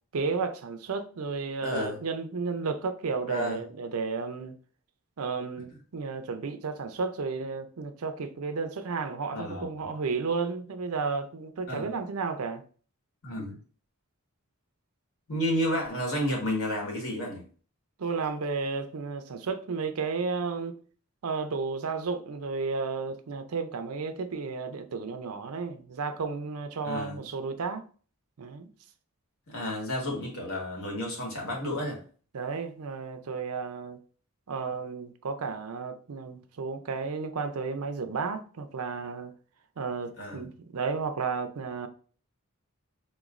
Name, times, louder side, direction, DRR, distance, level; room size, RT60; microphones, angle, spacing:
voice 1, 0.1-4.5 5.2-12.6 18.0-20.8 21.2-27.8 28.4-28.7 32.3-34.0 34.5-39.3 39.8-41.9, right 4 dB, 80° right, 0.5 m, -33 dB
voice 2, 1.6-2.0 3.3-3.6 9.3-9.7 11.7-11.9 13.2-13.6 15.3-17.4 26.8-27.2 29.5-32.0 40.2-40.5, equal, 70° left, 1.6 m, -31 dB
4.1 x 3.0 x 2.5 m
head